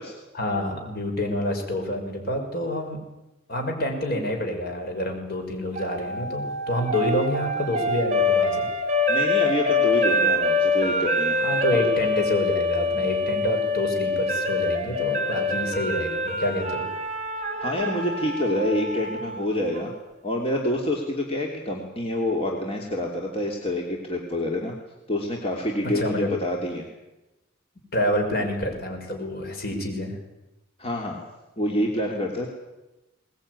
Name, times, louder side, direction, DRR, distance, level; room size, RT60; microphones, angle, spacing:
voice 1, 0.3-3.0 3.5-8.7 11.3-16.9 25.8-26.3 27.9-30.2, left 1 dB, 55° left, 3 dB, 6.4 m, -28 dB
sound 1, 5.8-19.9, left 2 dB, 35° right, 4.0 m, -25 dB
voice 2, 9.1-11.4 17.6-19.9 20.2-24.7 25.1-26.9 30.8-31.2 31.6-32.5, left 1 dB, 30° left, 0 dB, 3.2 m, -27 dB
22.0 x 20.0 x 9.8 m, 1.0 s
head